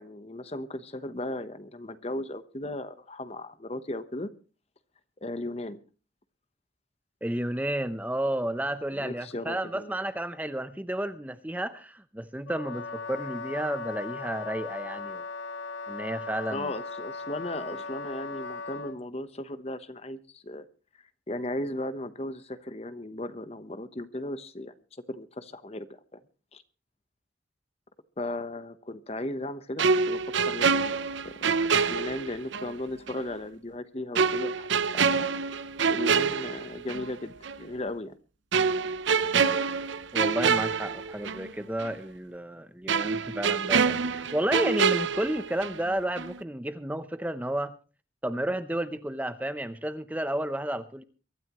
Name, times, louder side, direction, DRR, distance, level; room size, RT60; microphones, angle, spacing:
voice 1, 0.0-4.3 5.2-5.8 8.9-10.0 16.5-20.6 21.3-25.9 26.1-26.2 26.5-26.6 28.2-31.5 31.8-35.3 35.9-38.2, left 1 dB, 30° left, 12 dB, 1.0 m, -36 dB
voice 2, 7.2-15.2 15.9-16.7 40.1-47.7 48.2-51.0, right 1 dB, 10° right, 11 dB, 0.7 m, -32 dB
Wind instrument woodwind instrument, 12.5-19.0, left 4 dB, 85° left, 0.7 m, -38 dB
sound 1, 29.8-32.7 33.1-33.2 34.2-37.1 37.4-37.6 38.5-41.5 41.8-41.9 42.9-45.9 46.2-46.4, right 5 dB, 75° right, 0.7 m, -26 dB
23.5 x 13.0 x 3.0 m, 0.35 s
head